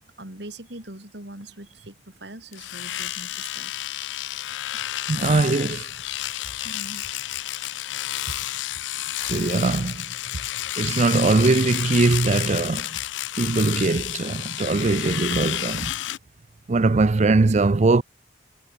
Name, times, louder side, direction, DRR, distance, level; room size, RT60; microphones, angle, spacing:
voice 1, 0.0-3.7 4.6-4.8 6.6-7.1, right 1 dB, 65° right, 6.1 m, -42 dB
Domestic sounds home sounds, 2.5-16.2, left 14 dB, 85° left, 0.4 m, -31 dB
voice 2, 5.1-5.8 9.3-10.0 10.8-12.9 13.4-15.9 16.7-18.0, right 3 dB, 40° right, 0.5 m, -21 dB
head